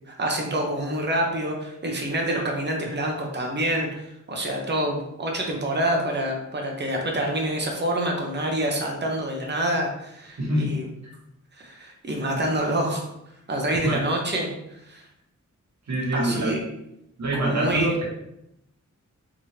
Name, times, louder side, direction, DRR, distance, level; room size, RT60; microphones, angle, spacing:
voice 1, 0.1-10.9 11.6-13.0 13.5-14.5 14.9-15.0 16.1-16.6 17.4-18.0, right 1 dB, 35° right, 1 dB, 0.7 m, -27 dB
voice 2, 10.4-11.1 13.8-14.0 15.9-16.6 17.2-18.0, right 1 dB, 60° right, -4 dB, 1.2 m, -25 dB
3.6 x 3.2 x 2.8 m, 0.81 s
wide cardioid pair, 145°, 31 cm